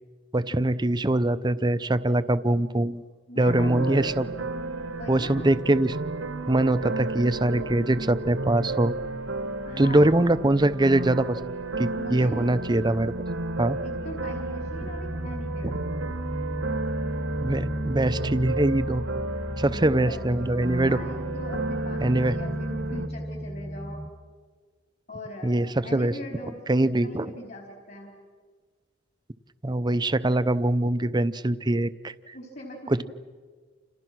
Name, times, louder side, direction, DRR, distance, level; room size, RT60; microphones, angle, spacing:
voice 1, 0.3-3.0 3.4-4.3 5.1-6.0 6.5-9.0 9.8-11.4 11.8-13.1 13.6-13.8 17.4-19.1 19.6-21.0 22.0-22.3 25.4-26.1 26.7-27.3 29.6-32.3 32.9-33.0, right 1 dB, 20° right, 14 dB, 0.7 m, -23 dB
voice 2, 3.3-4.1 4.9-5.5 9.6-10.2 11.9-12.5 13.8-16.1 19.6-24.1 25.1-25.6 25.8-28.2 32.3-33.0, equal, 50° left, 0 dB, 4.5 m, -40 dB
sound 1, 3.5-23.1, right 2 dB, 85° right, 1.5 m, -33 dB
sound 2, 12.0-24.1, equal, ahead, 1.2 m, -35 dB
30.0 x 28.5 x 6.1 m, 1.5 s
head